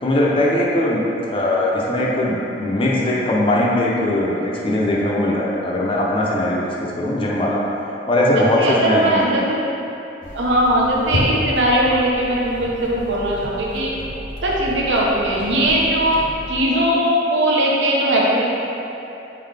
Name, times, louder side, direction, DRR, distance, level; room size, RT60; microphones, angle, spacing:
voice 1, 0.0-1.0 1.3-7.6 8.1-9.2, left 1 dB, 30° left, -4 dB, 0.5 m, -20 dB
voice 2, 8.3-9.6 10.3-13.9 14.4-16.2 16.5-18.4, right 1 dB, 75° right, -4 dB, 0.7 m, -19 dB
sound 1, 10.2-16.6, left 1 dB, 85° left, 0.7 m, -31 dB
3.9 x 3.8 x 3.3 m, 2.9 s
head